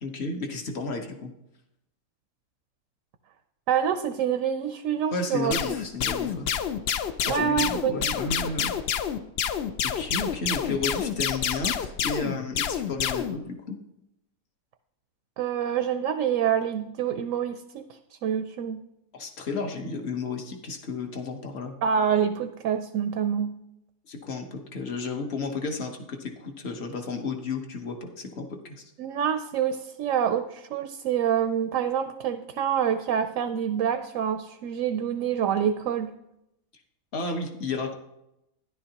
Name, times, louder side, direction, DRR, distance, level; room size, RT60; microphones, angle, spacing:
voice 1, 0.0-1.3 5.1-6.5 7.3-8.7 9.8-13.8 19.1-21.8 24.1-28.9 37.1-38.0, left 3 dB, 50° left, 5 dB, 1.2 m, -33 dB
voice 2, 3.7-5.5 7.2-8.1 15.4-17.9 18.2-18.8 21.8-23.6 29.0-36.1, right 8 dB, 70° right, 9 dB, 0.9 m, -26 dB
sound 1, 5.5-13.4, left 8 dB, 65° left, 0.6 m, -28 dB
12.5 x 10.5 x 2.9 m, 0.87 s
omnidirectional pair, 1.5 m